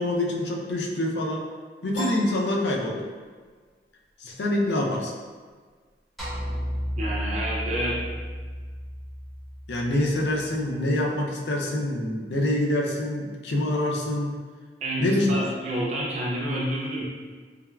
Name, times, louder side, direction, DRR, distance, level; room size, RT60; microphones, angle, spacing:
voice 1, 0.0-1.5 1.8-3.0 4.2-5.1 9.7-14.4 15.0-15.4, left 1 dB, 70° left, -1 dB, 0.4 m, -26 dB
Piano, 1.9-3.5, right 1 dB, 90° left, 0.9 m, -36 dB
sound 1, 6.2-10.6, equal, ahead, 0.6 m, -33 dB
voice 2, 7.0-8.0 14.8-17.0, right 1 dB, 40° right, -5 dB, 0.4 m, -28 dB
3.3 x 2.3 x 2.2 m, 1.5 s
head